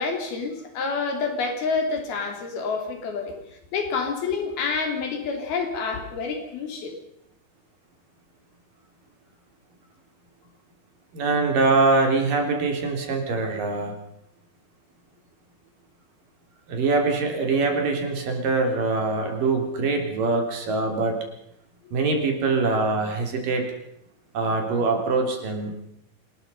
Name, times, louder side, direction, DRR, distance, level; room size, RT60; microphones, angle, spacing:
voice 1, 0.0-3.4 3.7-7.0, left 4 dB, 85° left, 4 dB, 5.4 m, -28 dB
voice 2, 11.1-14.0 16.7-21.2 21.9-23.7 24.3-25.8, right 3 dB, 65° right, 3 dB, 4.9 m, -23 dB
27.0 x 20.0 x 5.6 m, 0.80 s
omnidirectional pair, 4.2 m